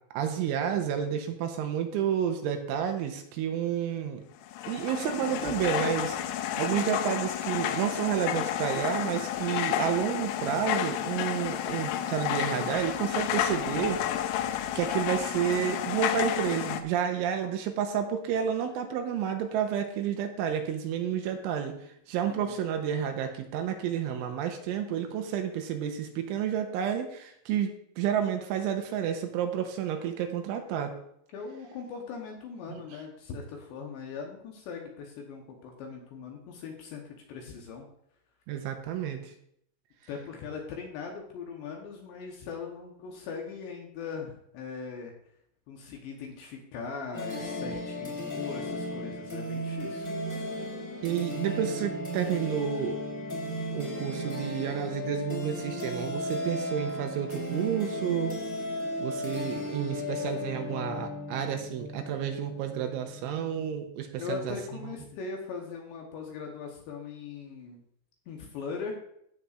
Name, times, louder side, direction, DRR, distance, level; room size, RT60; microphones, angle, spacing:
voice 1, 0.1-4.2 4.7-14.0 14.8-21.8 22.1-30.9 32.7-32.8 38.5-39.3 51.0-53.0 53.7-58.4 59.0-64.6 64.8-64.9, right 8 dB, 85° right, 5 dB, 3.1 m, -30 dB
sound 1, 4.4-16.8, left 11 dB, 90° left, 3.3 m, -31 dB
voice 2, 31.3-37.9 40.1-45.1 45.7-50.1 64.2-67.8 68.3-68.9, left 5 dB, 75° left, 1 dB, 2.8 m, -40 dB
sound 2, 47.1-63.7, equal, 15° left, 2.1 m, -35 dB
15.5 x 6.8 x 2.5 m, 0.72 s
omnidirectional pair, 5.9 m